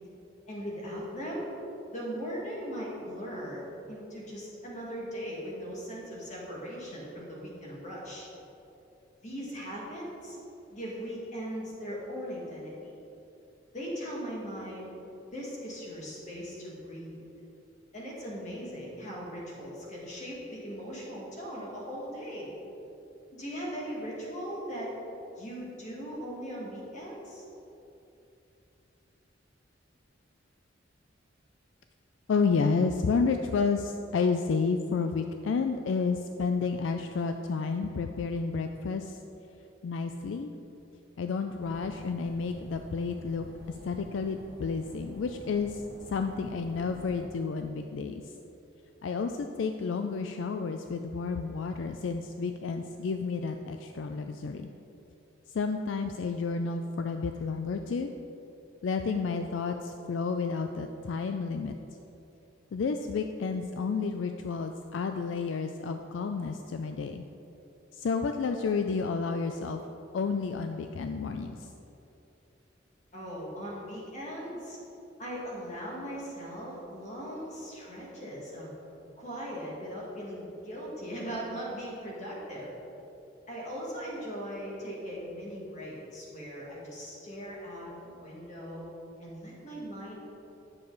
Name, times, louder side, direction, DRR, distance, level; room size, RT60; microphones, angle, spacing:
voice 1, 0.5-1.5 1.9-8.3 9.2-10.4 10.7-13.0 13.7-14.9 15.3-17.2 17.9-22.5 23.3-24.9 25.4-27.5 73.1-74.8 75.2-78.7 79.2-82.7 83.5-88.8 89.2-90.2, equal, 40° left, -5 dB, 2.1 m, -39 dB
voice 2, 32.3-39.2 39.8-40.5 41.2-43.5 43.8-45.8 46.1-48.3 49.0-54.7 55.5-58.1 58.8-61.7 62.7-67.2 67.9-69.8 70.1-71.7, left 4 dB, 70° left, 6 dB, 0.4 m, -31 dB
sound 1, 41.6-47.3, equal, 80° right, 1.2 m, -49 dB
9.7 x 6.7 x 4.0 m, 2.9 s
head